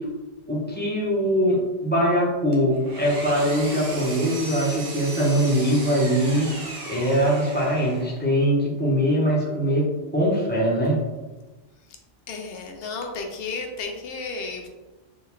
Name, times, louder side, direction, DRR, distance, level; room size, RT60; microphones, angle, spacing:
voice 1, 0.5-6.5 6.9-9.8 10.1-11.0, equal, 10° left, -7 dB, 0.7 m, -22 dB
Engine, 2.5-8.2, right 2 dB, 40° right, 0.7 m, -37 dB
voice 2, 12.3-14.7, left 4 dB, 65° left, 3 dB, 0.7 m, -33 dB
3.7 x 2.4 x 3.0 m, 1.2 s
omnidirectional pair, 1.3 m